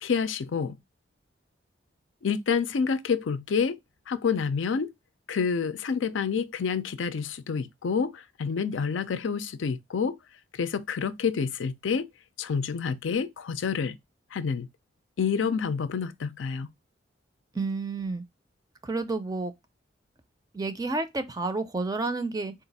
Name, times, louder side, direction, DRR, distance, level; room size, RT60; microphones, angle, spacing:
voice 1, 0.0-0.8 2.2-3.8 4.1-4.9 5.3-10.2 10.5-12.1 12.4-14.0 14.3-14.7 15.2-16.7, left 6 dB, 80° left, 0.5 m, -28 dB
voice 2, 17.5-18.2 18.8-19.5 20.5-22.5, right 3 dB, 20° right, 0.4 m, -30 dB
3.9 x 2.4 x 4.0 m
head